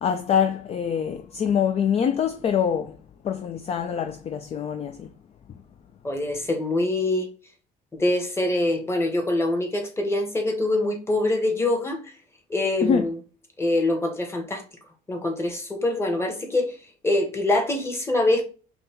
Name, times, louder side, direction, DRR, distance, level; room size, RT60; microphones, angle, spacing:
voice 1, 0.0-3.0 3.2-5.1 12.8-13.1, left 8 dB, 40° left, 0.4 m, -24 dB
voice 2, 6.0-7.3 7.9-12.0 12.5-13.2 13.6-14.6 15.1-16.7 17.0-18.4, left 2 dB, 15° left, 1.1 m, -24 dB
5.2 x 2.3 x 2.9 m
cardioid pair, 110°, 17 cm